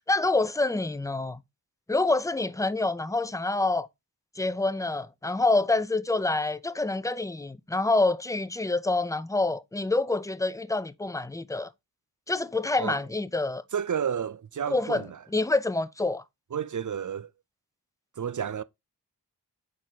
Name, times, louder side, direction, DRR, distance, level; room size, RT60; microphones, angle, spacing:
voice 1, 0.1-1.4 1.9-3.9 4.4-11.7 12.3-13.6 14.7-15.0 15.3-16.2, left 2 dB, 10° left, 0.5 m, -27 dB
voice 2, 13.7-15.2 16.5-17.3 18.2-18.6, right 8 dB, 50° right, 0.5 m, -31 dB
6.3 x 4.4 x 3.5 m
cardioid pair, 45°, 40 cm